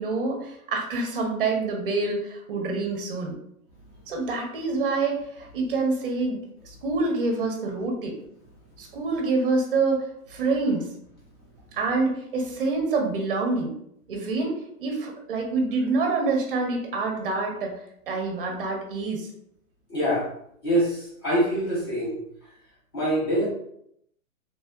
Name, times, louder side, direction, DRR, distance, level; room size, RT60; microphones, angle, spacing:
voice 1, 0.0-3.4 4.1-8.2 8.8-10.9 11.7-13.7 14.1-14.5 14.8-17.7 18.1-19.3, right 3 dB, 40° right, 2 dB, 0.6 m, -26 dB
voice 2, 19.9-20.3 20.6-22.2 22.9-23.5, equal, 20° left, -6 dB, 0.5 m, -24 dB
3.1 x 2.6 x 2.3 m, 0.73 s
hypercardioid pair, 170°, 45 cm